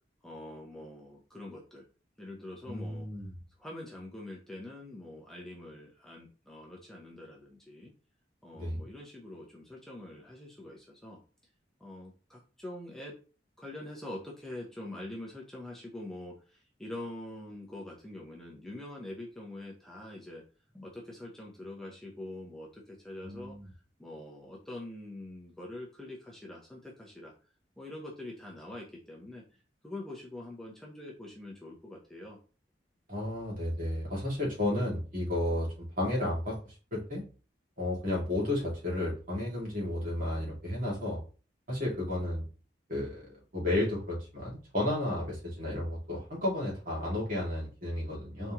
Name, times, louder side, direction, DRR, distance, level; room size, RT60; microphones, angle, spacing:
voice 1, 0.2-1.8 2.2-3.1 3.6-7.9 8.4-11.2 11.8-13.1 13.6-20.4 20.7-23.6 24.0-27.3 27.8-29.4 29.8-32.4, left 1 dB, ahead, -3 dB, 0.8 m, -44 dB
voice 2, 2.7-3.4 8.5-8.8 23.2-23.7 33.1-36.6 36.9-37.2 37.8-41.2 41.7-42.5 42.9-48.5, left 1 dB, 50° right, -3 dB, 2.3 m, -32 dB
4.2 x 3.5 x 3.0 m, 0.36 s
head